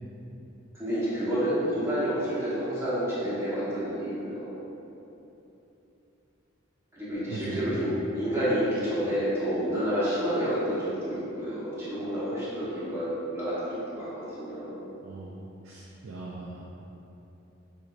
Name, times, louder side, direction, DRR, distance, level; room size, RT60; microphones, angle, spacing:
voice 1, 0.8-4.6 6.9-14.8, equal, 15° right, -12 dB, 1.1 m, -29 dB
voice 2, 7.3-7.9 15.0-16.7, right 2 dB, 90° right, -4 dB, 0.5 m, -39 dB
7.7 x 2.7 x 2.5 m, 2.9 s
head